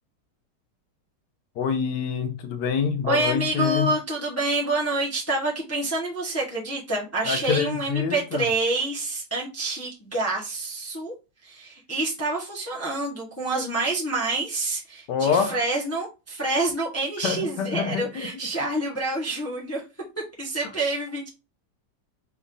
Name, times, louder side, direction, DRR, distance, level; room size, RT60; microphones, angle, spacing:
voice 1, 1.6-3.9 7.2-8.4 15.1-15.6 17.2-18.3, left 6 dB, 75° left, 1.4 m, -26 dB
voice 2, 3.0-11.1 11.4-19.8 20.4-21.3, right 2 dB, 10° left, 0.8 m, -27 dB
4.2 x 2.6 x 3.6 m
omnidirectional pair, 1.9 m